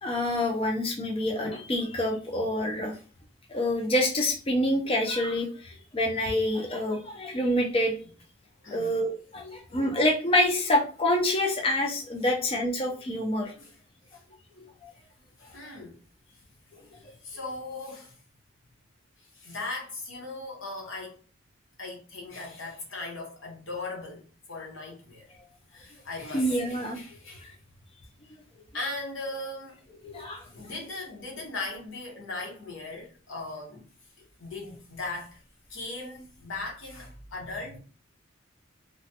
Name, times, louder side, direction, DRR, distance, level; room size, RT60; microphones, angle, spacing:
voice 1, 0.0-2.9 3.5-8.0 8.7-13.5 14.6-14.9 26.3-27.0 30.0-30.4, left 1 dB, 30° left, 0.5 m, -27 dB
voice 2, 8.6-8.9 13.6-13.8 14.1-14.2 15.4-16.0 16.9-18.2 19.3-21.2 21.8-25.4 25.7-27.5 28.7-29.8 30.4-33.8 34.2-35.4 35.7-37.8, left 2 dB, 90° left, 1.1 m, -38 dB
3.0 x 2.1 x 2.8 m
head